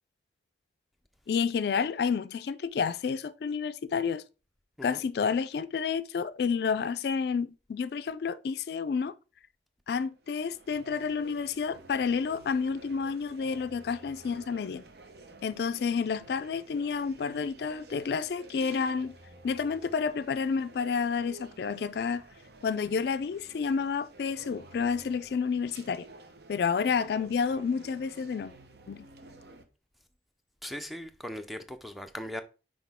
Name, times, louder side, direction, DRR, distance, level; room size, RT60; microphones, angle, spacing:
voice 1, 1.3-4.2 4.8-9.1 9.9-14.8 15.4-19.2 19.4-22.2 22.6-26.1 26.5-28.5 28.9-29.1, left 5 dB, 60° left, 0.3 m, -30 dB
sound 1, 9.9-29.6, right 2 dB, 60° right, 0.8 m, -52 dB
voice 2, 30.6-32.4, equal, ahead, 0.5 m, -39 dB
5.9 x 4.8 x 3.5 m
head